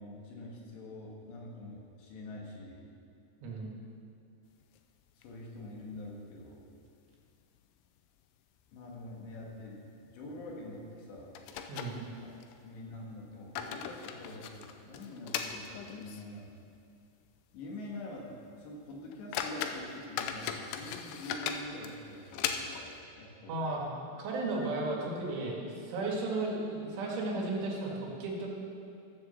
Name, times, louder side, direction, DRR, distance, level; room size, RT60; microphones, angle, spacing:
voice 1, 0.0-2.9 5.2-6.6 8.7-11.4 12.2-12.3 12.6-16.6 17.5-23.5, left 1 dB, 70° left, -2 dB, 3.8 m, -45 dB
voice 2, 3.4-3.7 11.7-12.1 23.5-28.5, right 2 dB, 90° right, -2 dB, 4.4 m, -34 dB
sound 1, 4.6-5.6 5.9-6.0 6.4-6.5 7.1-7.6 7.9-8.0 8.6-8.8 9.1-9.3 10.6-10.7 11.4-12.6 13.2-16.4 16.7-16.8 17.4-17.5 17.9-18.1 18.6-18.7 19.1-23.0, left 8 dB, 90° left, 2.4 m, -39 dB
14.5 x 7.0 x 7.0 m, 2.5 s
omnidirectional pair, 5.3 m